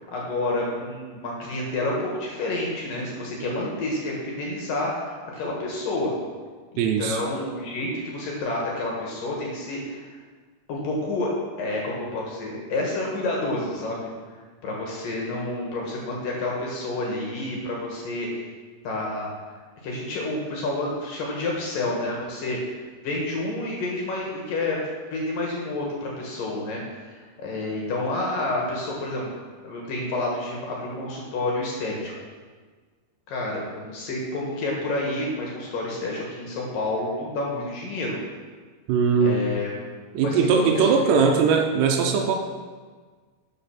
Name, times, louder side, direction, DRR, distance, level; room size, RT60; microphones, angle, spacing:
voice 1, 0.0-6.1 6.7-10.1 10.7-11.3 11.6-14.1 14.6-18.3 18.8-19.3 19.8-22.6 23.0-24.8 25.1-29.3 29.6-32.1 33.3-38.2 39.2-39.7 40.2-41.4, left 2 dB, 60° left, -2 dB, 2.7 m, -29 dB
voice 2, 6.8-7.2 38.9-39.4 40.1-42.4, right 5 dB, 80° right, 4 dB, 2.7 m, -20 dB
12.0 x 6.2 x 5.8 m, 1.5 s
omnidirectional pair, 5.2 m